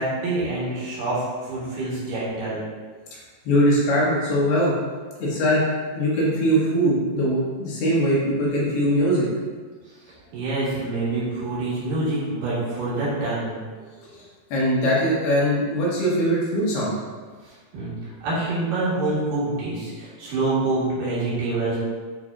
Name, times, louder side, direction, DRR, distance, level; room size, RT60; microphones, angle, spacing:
voice 1, 0.0-2.6 10.3-14.1 17.5-17.9 18.2-21.8, right 2 dB, 65° right, -9 dB, 3.5 m, -26 dB
voice 2, 3.4-4.7 5.2-5.6 5.9-9.3 14.1-14.2 14.5-16.9, equal, 80° left, -6 dB, 3.3 m, -21 dB
9.2 x 4.1 x 2.5 m, 1.5 s
omnidirectional pair, 4.4 m